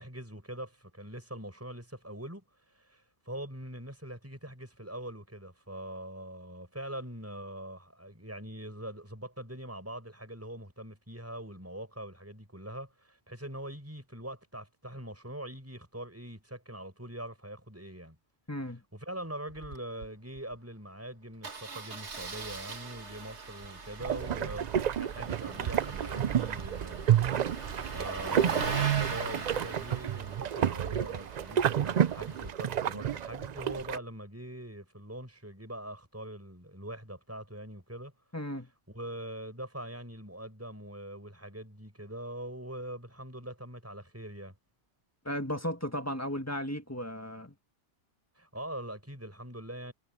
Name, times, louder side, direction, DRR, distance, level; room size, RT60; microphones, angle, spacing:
voice 1, 0.0-18.2 18.9-24.7 25.0-27.1 27.9-38.1 38.9-44.5 48.4-49.9, right 1 dB, 10° right, 6.2 m, -43 dB
voice 2, 18.5-18.8 38.3-38.7 45.2-47.5, equal, 15° left, 1.5 m, -35 dB
Engine starting, 19.5-19.8 20.0-20.1 20.4-20.5 21.4-32.5, right 6 dB, 70° right, 2.1 m, -39 dB
sound 1, 24.0-34.0, right 9 dB, 55° right, 0.5 m, -30 dB
omnidirectional pair, 1.2 m